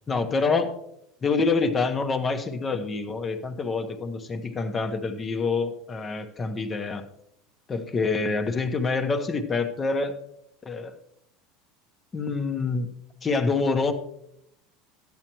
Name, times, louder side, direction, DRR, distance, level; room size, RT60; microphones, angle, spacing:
voice 1, 0.1-0.7 1.2-7.0 7.7-10.2 10.6-10.9 12.1-12.9 13.2-13.9, left 4 dB, 25° left, 8 dB, 1.1 m, -26 dB
13.0 x 8.8 x 3.1 m, 0.75 s
supercardioid pair, 105°, 0 cm